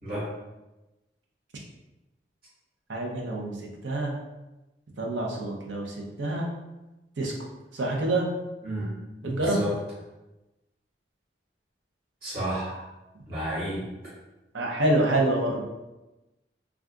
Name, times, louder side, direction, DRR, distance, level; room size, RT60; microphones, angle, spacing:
voice 1, 0.0-0.3 8.6-8.9 9.2-9.8 12.2-12.8 13.3-13.9, equal, 55° right, -7 dB, 1.3 m, -31 dB
voice 2, 2.9-3.5 3.8-4.1 5.0-6.5 7.2-7.3 7.7-8.3 9.2-9.6 14.5-15.6, right 1 dB, 80° right, -1 dB, 0.6 m, -26 dB
2.4 x 2.3 x 3.7 m, 1.0 s
head